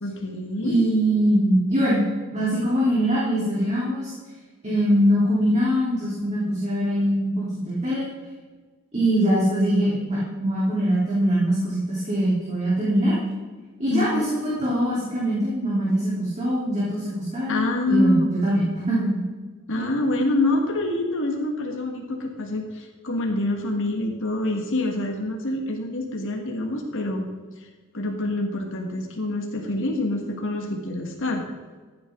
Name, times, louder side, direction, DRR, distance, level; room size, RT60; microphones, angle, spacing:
voice 1, 0.0-0.8 13.9-14.3 17.5-18.7 19.7-27.3 27.9-31.4, left 2 dB, 60° left, 2 dB, 1.6 m, -26 dB
voice 2, 0.6-2.0 2.3-4.1 4.6-8.1 8.9-13.1 13.8-19.2, equal, 30° right, -8 dB, 3.3 m, -22 dB
14.5 x 9.4 x 3.7 m, 1.4 s
head